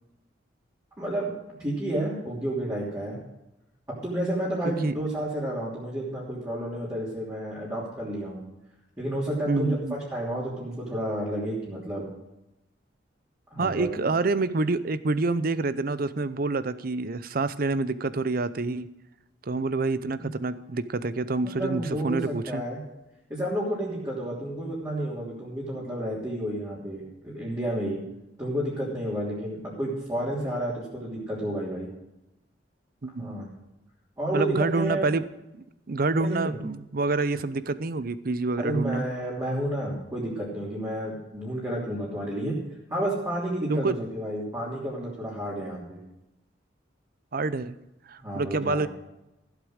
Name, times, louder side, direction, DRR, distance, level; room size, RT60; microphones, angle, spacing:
voice 1, 1.0-1.3 1.6-3.2 4.0-8.4 9.0-9.8 10.1-12.1 13.5-13.9 21.4-22.8 23.3-28.0 28.4-31.9 33.2-33.5 34.2-35.1 36.2-36.6 38.6-42.6 42.9-46.0 48.2-48.9, right 1 dB, 20° right, -7 dB, 3.2 m, -31 dB
voice 2, 9.5-9.9 13.6-18.9 19.4-22.6 33.0-33.4 34.3-35.2 35.5-39.0 43.7-44.0 47.3-47.8 48.1-48.9, right 3 dB, 50° right, 15 dB, 0.7 m, -27 dB
15.5 x 8.3 x 6.4 m, 0.93 s
head